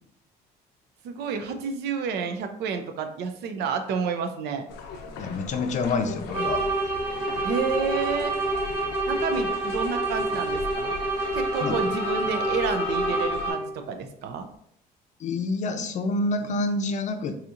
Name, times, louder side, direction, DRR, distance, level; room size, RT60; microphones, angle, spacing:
voice 1, 1.0-4.7 7.4-8.4 9.1-10.9 11.3-14.5, right 6 dB, 80° right, 7 dB, 0.6 m, -30 dB
sound 1, 4.7-13.5, left 6 dB, 90° left, 0.6 m, -37 dB
voice 2, 5.2-6.6 11.6-11.7 15.2-17.4, left 3 dB, 45° left, 7 dB, 0.5 m, -27 dB
sound 2, 6.3-13.8, right 2 dB, 30° right, 1.3 m, -28 dB
4.1 x 2.8 x 2.5 m, 0.69 s
cardioid pair, 110°, 17 cm